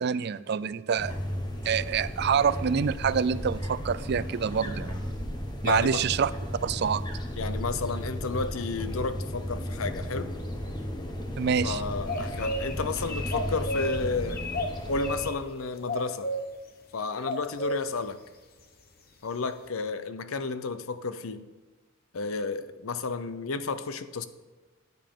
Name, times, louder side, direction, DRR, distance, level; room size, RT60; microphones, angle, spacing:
voice 1, 0.0-1.1 1.6-5.0 5.6-6.3 6.6-7.0 11.4-11.8, right 7 dB, 55° right, 16 dB, 0.4 m, -26 dB
sound 1, 1.0-15.3, equal, 20° left, 1.2 m, -34 dB
voice 2, 5.6-6.0 7.4-10.3 11.6-14.4 14.9-16.3 16.9-18.2 19.2-21.5 22.1-24.3, left 4 dB, 90° left, 12 dB, 0.7 m, -32 dB
sound 2, 12.1-12.7 13.0-14.0 14.3-15.3 15.9-16.4 17.2-17.8, equal, 50° left, 1.1 m, -31 dB
14.0 x 9.2 x 3.8 m, 1.3 s
head